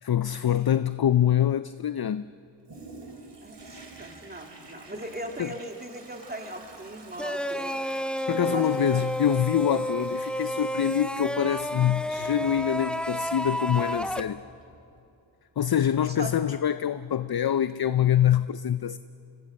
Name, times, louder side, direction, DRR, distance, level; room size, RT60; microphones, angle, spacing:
voice 1, 0.0-2.3 5.4-5.5 8.3-14.4 15.6-19.0, left 10 dB, 50° left, 0.6 m, -25 dB
Toilet flush, 2.7-15.1 15.6-15.7, right 3 dB, 60° right, 3.1 m, -50 dB
voice 2, 3.4-7.8 8.5-9.1 16.0-16.3, right 1 dB, 20° right, 3.1 m, -39 dB
sound 1, 7.2-14.2, equal, ahead, 0.9 m, -30 dB
26.5 x 23.5 x 6.6 m
cardioid pair, 50°, 47 cm